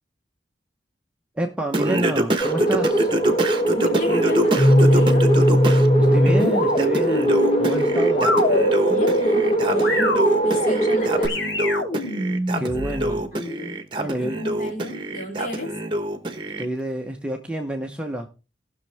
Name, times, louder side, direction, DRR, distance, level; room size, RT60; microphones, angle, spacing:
voice 1, 1.4-3.1 6.0-8.3 12.6-13.2 14.0-14.4 16.6-18.3, right 1 dB, 5° right, 2 dB, 0.9 m, -28 dB
Singing, 1.7-5.9 6.3-16.7, right 1 dB, 25° right, 1.1 m, -26 dB
sound 1, 2.4-11.3, right 2 dB, 30° left, 1.8 m, -22 dB
voice 2, 3.7-5.3 8.9-11.6 12.5-12.7 13.0-15.8, equal, 45° left, 0 dB, 3.6 m, -32 dB
sound 2, 4.5-13.1, left 1 dB, 85° left, 2.7 m, -22 dB
18.5 x 6.4 x 3.4 m, 0.30 s
head